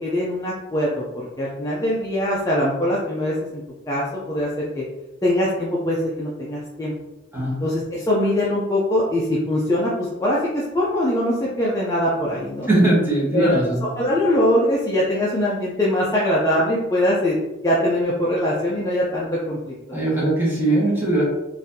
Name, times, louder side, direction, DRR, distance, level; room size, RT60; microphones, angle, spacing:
voice 1, 0.0-4.8 5.2-6.9 7.6-12.7 13.3-13.6 14.0-17.4 17.6-19.7, left 1 dB, 15° left, -5 dB, 0.4 m, -22 dB
voice 2, 12.7-13.8 19.9-21.2, right 1 dB, 10° right, -6 dB, 1.0 m, -20 dB
3.9 x 2.6 x 2.7 m, 1.0 s
head